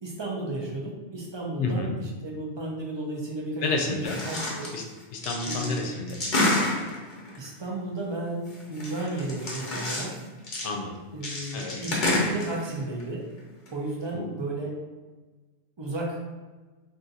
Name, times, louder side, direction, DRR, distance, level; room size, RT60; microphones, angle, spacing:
voice 1, 0.0-4.7 5.5-5.8 7.4-10.2 11.1-13.3 13.7-14.7 15.8-16.3, right 2 dB, 35° right, -3 dB, 0.5 m, -33 dB
voice 2, 1.6-1.9 3.6-4.2 4.7-4.8 5.1-6.2 10.6-10.9 11.5-11.8 14.1-14.3, left 3 dB, 80° left, 2 dB, 0.9 m, -30 dB
sound 1, 4.0-4.7 5.0-7.5 8.5-10.2 10.4-10.7 11.2-13.0 13.4-13.5 13.7-13.8, left 2 dB, 50° left, 0.8 m, -29 dB
2.6 x 2.5 x 4.0 m, 1.3 s
omnidirectional pair, 1.2 m